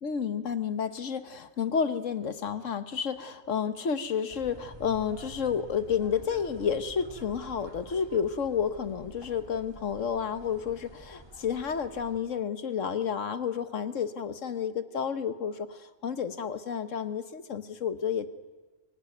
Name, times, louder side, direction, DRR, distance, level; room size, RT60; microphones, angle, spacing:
voice 1, 0.0-18.3, left 7 dB, 70° left, 11 dB, 1.5 m, -31 dB
sound 1, 4.3-12.2, right 1 dB, 20° right, 2.2 m, -49 dB
24.5 x 17.5 x 9.3 m, 1.2 s
omnidirectional pair, 1.4 m